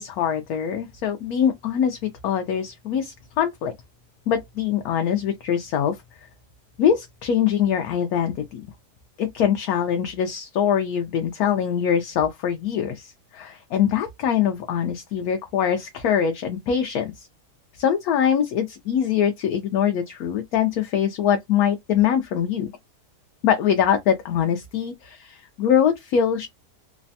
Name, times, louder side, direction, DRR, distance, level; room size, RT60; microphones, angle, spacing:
voice 1, 0.0-3.7 4.3-6.0 6.8-8.6 9.2-17.3 17.8-22.7 23.4-26.5, left 8 dB, 70° left, 1.0 m, -23 dB
3.2 x 2.1 x 2.6 m
omnidirectional pair, 1.8 m